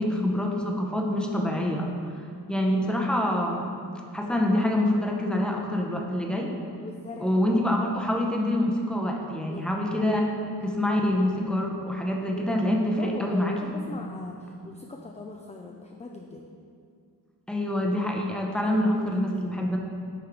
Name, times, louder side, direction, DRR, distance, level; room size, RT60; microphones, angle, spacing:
voice 1, 0.0-1.9 2.5-3.7 4.1-6.5 7.2-10.2 10.6-14.0 17.5-19.8, left 1 dB, ahead, 0 dB, 0.7 m, -26 dB
voice 2, 6.8-7.5 9.5-9.7 12.9-16.5 18.6-19.6, left 3 dB, 15° left, 1 dB, 0.4 m, -41 dB
6.8 x 3.6 x 4.7 m, 2.3 s
wide cardioid pair, 55°, 41 cm